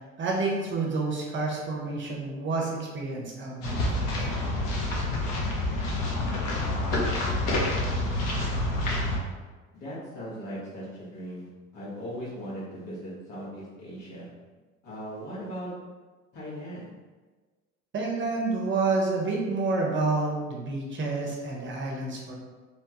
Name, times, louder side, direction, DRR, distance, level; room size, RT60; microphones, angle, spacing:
voice 1, 0.2-4.3 17.9-22.3, right 3 dB, 30° right, -2 dB, 0.7 m, -29 dB
sound 1, 3.6-9.2, left 1 dB, 55° left, 0.9 m, -28 dB
voice 2, 9.7-14.3 14.8-15.7 16.3-16.8, equal, 70° left, -7 dB, 1.4 m, -38 dB
2.9 x 2.2 x 2.9 m, 1.3 s
hypercardioid pair, 75°, 39 cm